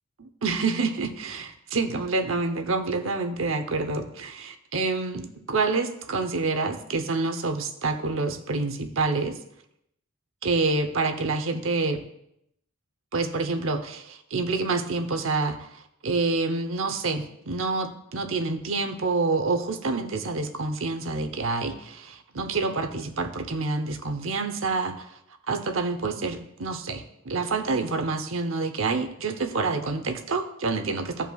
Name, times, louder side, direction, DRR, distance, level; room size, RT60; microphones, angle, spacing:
voice 1, 0.2-9.4 10.4-12.0 13.1-25.2 25.5-31.3, right 3 dB, 70° right, 7 dB, 0.9 m, -27 dB
16.0 x 5.5 x 2.4 m, 0.77 s
head